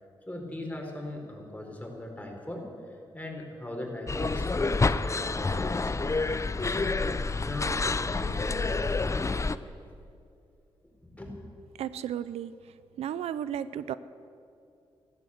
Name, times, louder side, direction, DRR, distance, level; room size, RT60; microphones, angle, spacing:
voice 1, 0.3-2.7 3.1-7.8 8.1-9.6 11.2-11.3, left 1 dB, 15° left, 0 dB, 4.5 m, -40 dB
sound 1, 4.1-9.6, left 3 dB, 30° left, 0.6 m, -28 dB
voice 2, 11.8-12.5 13.0-13.9, right 10 dB, 85° right, 15 dB, 0.4 m, -33 dB
15.0 x 12.0 x 8.0 m, 2.5 s
cardioid pair, 50°, 10 cm